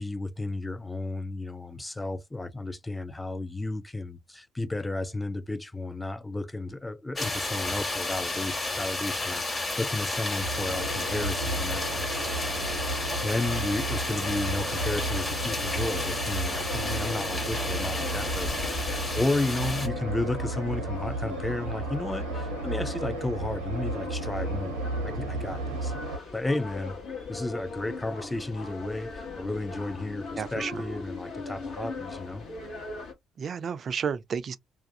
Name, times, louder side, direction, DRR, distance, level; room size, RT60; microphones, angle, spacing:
voice 1, 0.0-27.0 27.3-32.5, left 2 dB, 15° left, 0.4 m, -33 dB
sound 1, 7.2-19.9, left 2 dB, 35° left, 1.2 m, -32 dB
sound 2, 10.4-26.2, right 2 dB, 85° right, 0.6 m, -33 dB
sound 3, 14.6-33.1, left 4 dB, 60° left, 0.9 m, -40 dB
voice 2, 30.4-30.8 33.4-34.6, right 6 dB, 50° right, 0.3 m, -31 dB
2.4 x 2.2 x 2.6 m
figure-of-eight pair, 45°, 0 cm